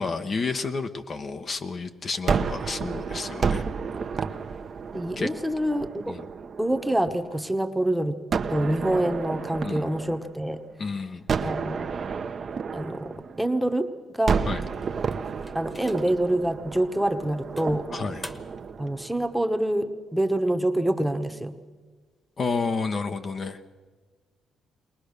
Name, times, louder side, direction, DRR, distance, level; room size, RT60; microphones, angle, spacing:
voice 1, 0.0-3.6 5.2-5.3 6.1-6.3 9.6-9.9 10.8-11.3 14.5-14.6 17.9-18.2 22.4-23.7, left 4 dB, 45° left, 7 dB, 0.9 m, -30 dB
Gunshot gunfire, 2.3-7.4 8.3-10.7 11.3-13.8 14.3-19.5, right 5 dB, 45° right, 0.9 m, -31 dB
voice 2, 4.9-6.2 6.6-8.2 8.5-10.6 11.4-11.9 12.7-14.4 15.5-17.9 18.8-21.6, right 1 dB, 5° right, 7 dB, 1.1 m, -26 dB
sound 1, 14.6-16.3 16.8-17.0 17.6-18.8, left 1 dB, 15° left, 1.3 m, -46 dB
21.5 x 19.5 x 6.6 m, 1.4 s
cardioid pair, 90°, 0 cm